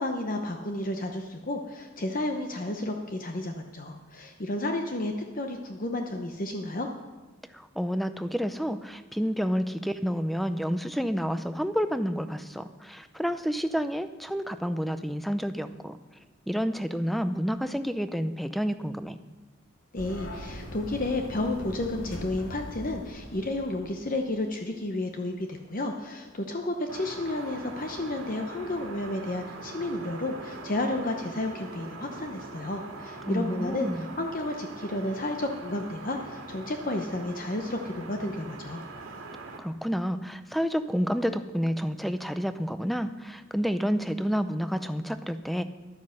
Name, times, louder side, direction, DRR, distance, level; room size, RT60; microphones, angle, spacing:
voice 1, 0.0-6.9 19.9-38.8, left 2 dB, 40° left, 4 dB, 0.8 m, -32 dB
voice 2, 7.5-16.0 16.5-19.2 33.2-34.0 39.6-45.6, equal, ahead, 11 dB, 0.4 m, -29 dB
sound 1, 20.0-24.2, equal, 80° left, 2.4 m, -41 dB
sound 2, 26.9-39.6, right 3 dB, 85° right, 1.9 m, -42 dB
12.0 x 9.6 x 6.4 m, 1.3 s
head